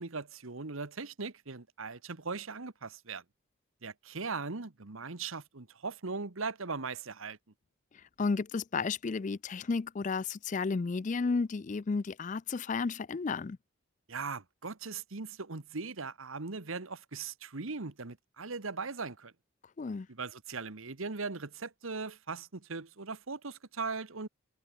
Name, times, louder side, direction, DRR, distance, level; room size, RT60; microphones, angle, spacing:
voice 1, 0.0-3.2 3.8-7.4 14.1-19.3 20.1-24.3, right 4 dB, 75° right, 1.3 m, -39 dB
voice 2, 7.9-13.6 19.8-20.1, left 4 dB, 35° left, 0.4 m, -33 dB
head